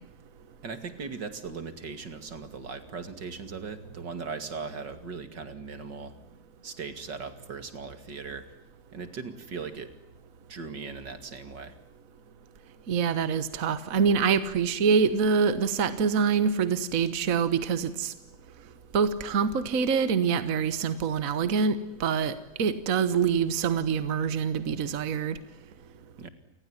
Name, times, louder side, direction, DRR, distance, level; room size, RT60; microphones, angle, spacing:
voice 1, 0.6-6.1 6.6-8.4 8.9-9.9 10.5-11.8 26.2-26.3, right 5 dB, 80° right, 10 dB, 3.0 m, -38 dB
voice 2, 12.9-18.1 18.9-25.4, right 6 dB, 50° right, 13 dB, 1.6 m, -25 dB
28.5 x 20.0 x 9.8 m, 0.87 s
omnidirectional pair, 1.9 m